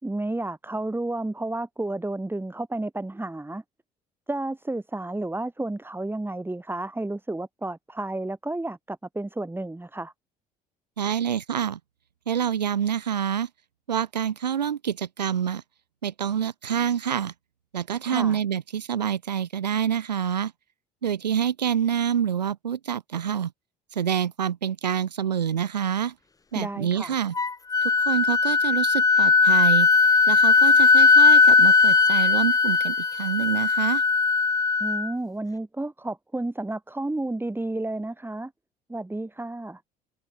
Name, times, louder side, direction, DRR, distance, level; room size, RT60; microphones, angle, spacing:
voice 1, 0.0-3.6 4.3-10.1 18.1-18.4 26.5-27.2 34.8-38.5 38.9-39.8, right 2 dB, 10° right, 3.0 m, -31 dB
voice 2, 11.0-11.8 12.3-13.5 13.9-15.6 16.0-17.3 17.7-20.5 21.0-23.5 23.9-26.1 26.5-27.3 27.8-29.9 30.3-34.0, right 8 dB, 85° right, 3.4 m, -27 dB
Wind instrument woodwind instrument, 27.4-35.1, left 4 dB, 15° left, 0.7 m, -18 dB
figure-of-eight pair, 55°, 21 cm